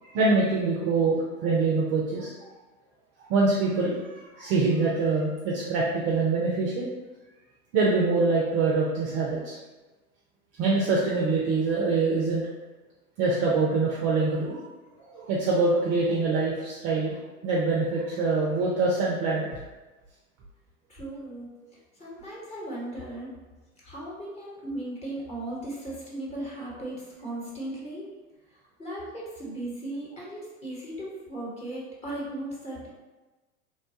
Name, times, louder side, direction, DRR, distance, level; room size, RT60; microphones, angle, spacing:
voice 1, 0.0-2.3 3.3-6.9 7.7-9.6 10.6-12.5 13.2-14.6 15.1-17.2 17.4-19.5, right 3 dB, 30° right, -4 dB, 0.4 m, -24 dB
voice 2, 20.9-21.5 22.0-23.3 23.8-28.1 28.8-32.9, right 1 dB, 15° left, -6 dB, 1.0 m, -37 dB
3.2 x 2.2 x 2.7 m, 1.2 s
hypercardioid pair, 105°, 43 cm